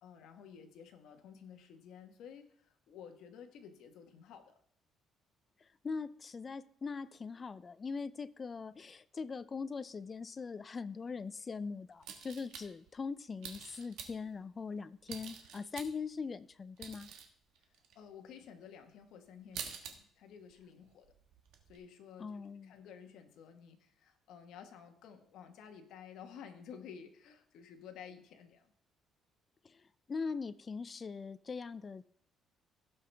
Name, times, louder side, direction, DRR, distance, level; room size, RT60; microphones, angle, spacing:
voice 1, 0.0-4.5 17.7-21.1 21.7-28.7, left 7 dB, 75° left, 1.3 m, -53 dB
voice 2, 5.8-17.1 22.2-22.7 29.6-29.8 30.1-32.0, left 5 dB, 30° left, 0.4 m, -41 dB
sound 1, 12.0-12.9 13.4-14.3 15.1-16.2 16.5-17.3 17.6-17.9 18.4-18.5 19.0-19.1 19.3-19.9 20.3-20.5 20.8-21.8, right 7 dB, 80° right, 1.3 m, -47 dB
16.5 x 5.7 x 3.4 m
cardioid pair, 135°, 0 cm